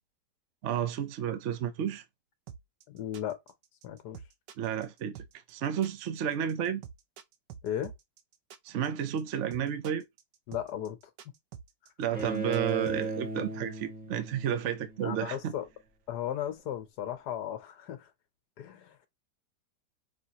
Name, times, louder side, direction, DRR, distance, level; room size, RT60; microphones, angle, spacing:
voice 1, 0.6-2.0 4.6-5.2 5.5-6.8 8.6-10.0 12.0-15.5, right 9 dB, 55° right, 0.9 m, -31 dB
sound 1, 2.5-13.0, right 8 dB, 85° right, 1.4 m, -47 dB
voice 2, 2.9-3.4 3.8-4.2 7.6-7.9 10.5-11.0 11.2-11.3 15.0-15.7 16.1-18.1 18.6-19.0, left 10 dB, 75° left, 1.4 m, -36 dB
Bowed string instrument, 12.1-15.2, right 3 dB, 5° right, 1.2 m, -36 dB
5.5 x 3.0 x 2.9 m
omnidirectional pair, 1.8 m